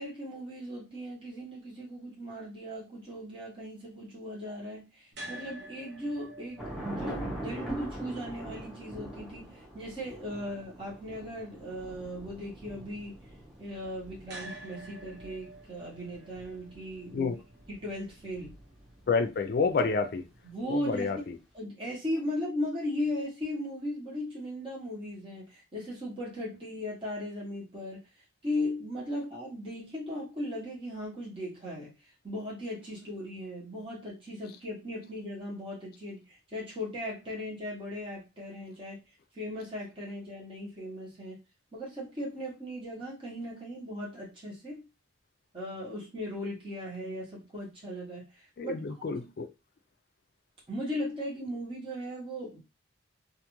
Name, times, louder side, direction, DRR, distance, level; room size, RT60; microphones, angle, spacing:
voice 1, 0.0-13.1 13.6-17.3 17.7-18.6 20.4-21.1 21.5-28.0 28.4-31.9 32.2-39.0 39.3-41.4 41.7-44.9 45.5-48.8 49.2-49.3 50.7-52.6, left 1 dB, 25° right, 0.9 m, -37 dB
sound 1, 5.1-21.3, right 1 dB, 55° right, 0.6 m, -52 dB
Thunder / Rain, 6.6-19.1, right 1 dB, ahead, 0.6 m, -43 dB
voice 2, 19.1-20.2 20.7-21.4 48.6-49.5, left 4 dB, 50° left, 0.3 m, -29 dB
2.5 x 2.3 x 2.9 m
head